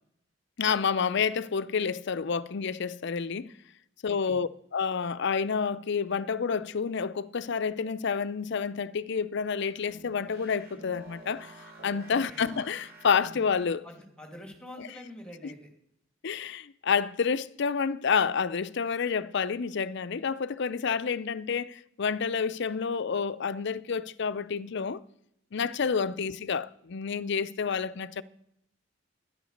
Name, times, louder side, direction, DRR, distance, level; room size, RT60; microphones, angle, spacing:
voice 1, 0.6-3.5 4.0-11.5 11.8-13.9 14.8-14.9 15.4-15.5 16.2-25.0 25.5-28.2, left 6 dB, 60° left, 0.5 m, -29 dB
voice 2, 4.1-4.4 12.1-12.5 13.8-15.7 26.1-26.2, left 1 dB, 5° left, 2.5 m, -46 dB
sound 1, 9.5-14.0, right 1 dB, 50° right, 3.5 m, -49 dB
12.5 x 10.0 x 6.5 m
head